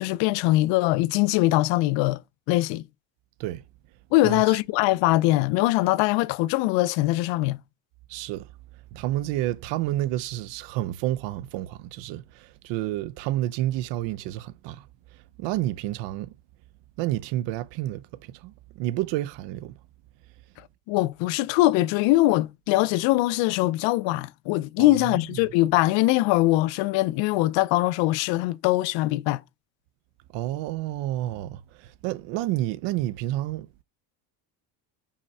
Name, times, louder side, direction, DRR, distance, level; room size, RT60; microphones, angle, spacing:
voice 1, 0.0-2.2 2.5-2.8 4.1-7.6 20.9-29.4, left 18 dB, 90° left, 0.6 m, -22 dB
voice 2, 8.1-8.5 8.9-14.8 15.4-16.3 17.0-18.1 18.4-19.7 24.8-25.2 30.3-31.6 32.0-33.8, right 15 dB, 75° right, 0.6 m, -29 dB
5.7 x 4.2 x 4.7 m
cardioid pair, 180°, 43 cm